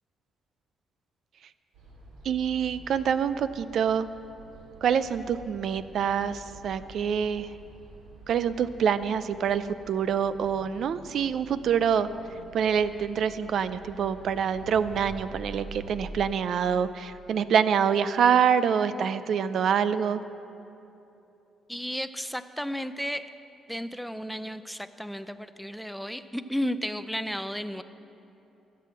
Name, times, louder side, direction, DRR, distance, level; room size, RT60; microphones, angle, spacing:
sound 1, 1.7-16.0, right 2 dB, 85° right, 2.7 m, -48 dB
voice 1, 2.2-4.1 4.8-7.5 8.3-12.1 12.5-20.2, right 7 dB, 65° right, 13 dB, 0.4 m, -26 dB
voice 2, 21.7-23.3 23.7-27.8, equal, ahead, 11 dB, 0.5 m, -33 dB
14.5 x 7.6 x 7.6 m, 2.9 s
cardioid pair, 90°, 0 cm